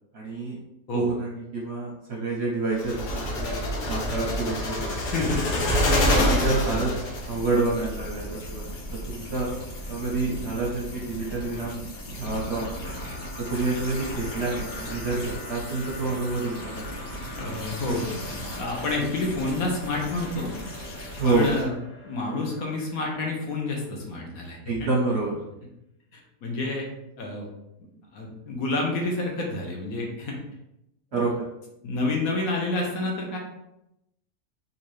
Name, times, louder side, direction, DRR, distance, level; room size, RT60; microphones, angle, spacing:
voice 1, 0.1-0.6 0.9-4.9 6.1-6.9 7.3-9.6 9.9-11.9 12.2-12.9 13.4-17.0 21.2-21.5 24.7-25.4 31.1-31.3, right 3 dB, 55° right, -3 dB, 0.8 m, -28 dB
sound 1, 2.8-7.3, left 1 dB, 85° left, 1.4 m, -25 dB
voice 2, 5.1-5.5 6.7-6.8 17.2-18.0 18.6-20.5 21.2-21.7 22.0-24.9 26.1-26.9 27.2-27.5 28.1-30.4 31.1-31.2 31.8-33.4, left 2 dB, 65° left, 0 dB, 1.1 m, -29 dB
sound 2, 7.1-21.6, left 1 dB, 50° left, 1.2 m, -38 dB
sound 3, 12.3-24.0, right 1 dB, 25° left, 0.7 m, -43 dB
3.7 x 2.7 x 3.0 m, 0.85 s
omnidirectional pair, 1.7 m